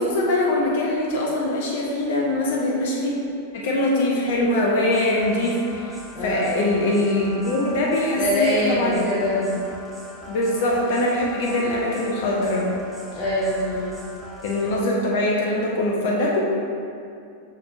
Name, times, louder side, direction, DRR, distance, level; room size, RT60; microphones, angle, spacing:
voice 1, 0.0-3.1 3.5-9.0 9.4-9.5 10.3-12.7 14.4-16.4, left 1 dB, 55° left, -3 dB, 0.7 m, -22 dB
sound 1, 4.8-14.9, equal, 15° right, 1.0 m, -40 dB
voice 2, 6.1-6.6 8.2-9.5 13.1-14.0, left 1 dB, 40° left, -9 dB, 1.2 m, -24 dB
6.1 x 5.8 x 2.6 m, 2.4 s
figure-of-eight pair, 90°, 0 cm